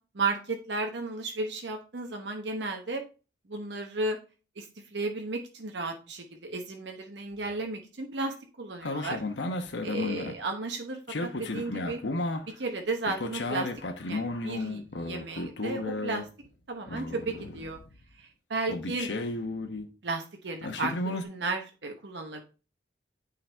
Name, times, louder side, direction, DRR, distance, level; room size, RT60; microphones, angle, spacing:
voice 1, 0.1-3.0 3.5-4.2 4.6-9.2 9.8-12.0 12.4-13.7 14.0-16.3 16.7-17.8 18.2-19.1 20.0-22.4, right 3 dB, 75° right, 3 dB, 0.9 m, -34 dB
sound 1, 8.8-10.3 11.1-12.5 13.0-16.5 16.9-18.0 18.7-19.9 20.6-21.2, left 2 dB, 90° left, 0.8 m, -33 dB
8.8 x 3.9 x 3.3 m, 0.33 s
head